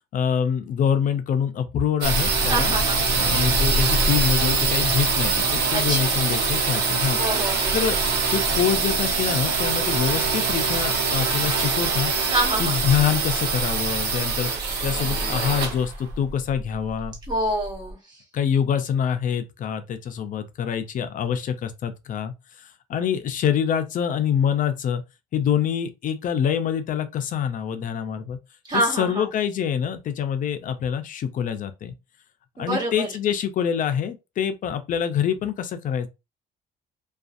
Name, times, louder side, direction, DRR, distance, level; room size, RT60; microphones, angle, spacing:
voice 1, 0.1-2.7 3.1-7.2 7.7-8.0 8.3-12.3 12.6-14.5 14.8-17.2 18.3-25.0 25.3-28.4 28.7-31.9 32.6-36.1, left 8 dB, 50° left, 0.5 m, -25 dB
sound 1, 2.0-17.6, right 4 dB, 80° right, 0.9 m, -23 dB
voice 2, 2.5-3.1 5.7-6.1 7.2-7.8 12.3-12.7 17.3-18.0 28.7-29.3 32.6-33.1, right 1 dB, 25° right, 1.4 m, -26 dB
2.5 x 2.3 x 2.5 m
cardioid pair, 110°, 17 cm